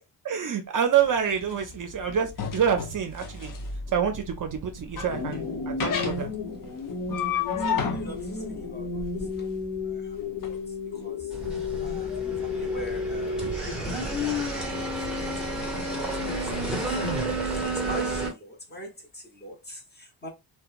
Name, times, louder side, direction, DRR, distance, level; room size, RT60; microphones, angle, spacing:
voice 1, 0.2-3.5 3.9-6.3, right 8 dB, 50° right, 0.5 m, -27 dB
sound 1, 1.0-10.5, left 7 dB, 50° left, 0.6 m, -33 dB
sound 2, 5.1-14.0, left 4 dB, 75° left, 1.0 m, -33 dB
voice 2, 7.5-20.3, equal, 25° left, 0.9 m, -43 dB
sound 3, 11.3-18.3, right 1 dB, ahead, 0.9 m, -30 dB
2.8 x 2.2 x 2.4 m
cardioid pair, 95°, 43 cm